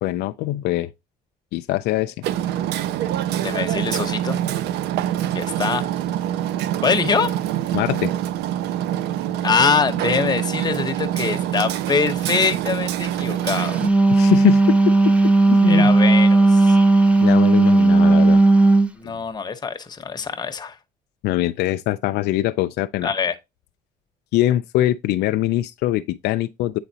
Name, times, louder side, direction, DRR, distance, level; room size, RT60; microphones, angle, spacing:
voice 1, 0.0-0.9 1.5-2.1 7.7-8.1 14.1-16.0 17.2-18.4 21.2-23.1 24.3-26.8, left 14 dB, 80° left, 0.4 m, -23 dB
Hammer, 2.2-13.9, right 11 dB, 80° right, 0.5 m, -25 dB
voice 2, 3.4-4.4 5.3-5.8 6.8-7.3 9.4-13.8 15.7-16.8 18.9-20.8 23.0-23.4, left 5 dB, 25° left, 0.9 m, -23 dB
Wind instrument woodwind instrument, 13.6-18.9, right 2 dB, 5° right, 0.6 m, -15 dB
9.0 x 4.0 x 2.7 m
cardioid pair, 110°, 17 cm